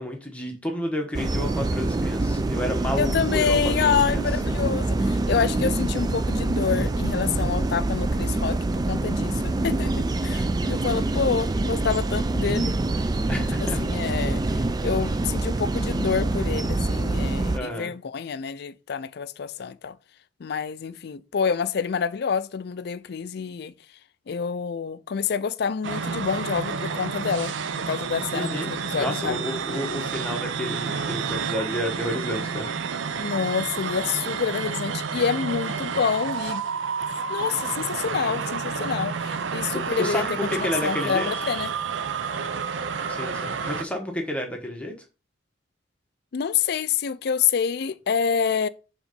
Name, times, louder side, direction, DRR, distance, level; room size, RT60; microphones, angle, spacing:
voice 1, 0.0-4.2 13.3-13.8 17.5-17.9 28.3-32.7 39.7-41.3 43.1-44.9, left 1 dB, 5° left, 1.2 m, -31 dB
sound 1, 1.1-17.6, right 2 dB, 20° right, 0.3 m, -25 dB
voice 2, 3.0-12.7 13.3-20.0 20.4-23.7 24.3-29.4 33.1-36.6 37.3-41.7 46.3-48.7, left 6 dB, 60° left, 0.4 m, -27 dB
sound 2, 25.8-43.8, right 5 dB, 85° right, 0.6 m, -30 dB
5.0 x 3.7 x 5.3 m
head